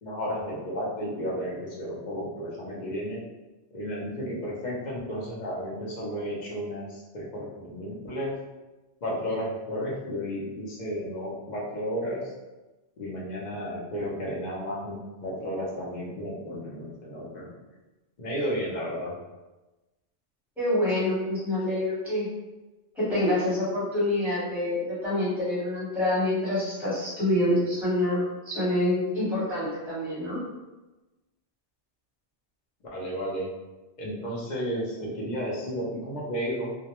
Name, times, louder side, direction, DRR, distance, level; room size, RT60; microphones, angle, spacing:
voice 1, 0.0-3.2 3.7-8.4 9.0-12.3 13.0-17.5 18.2-19.1 32.9-33.5 34.0-36.7, equal, 50° left, -4 dB, 0.6 m, -33 dB
voice 2, 20.6-22.3 22.9-30.4, left 1 dB, ahead, -10 dB, 1.0 m, -26 dB
2.2 x 2.1 x 2.9 m, 1.1 s
omnidirectional pair, 1.2 m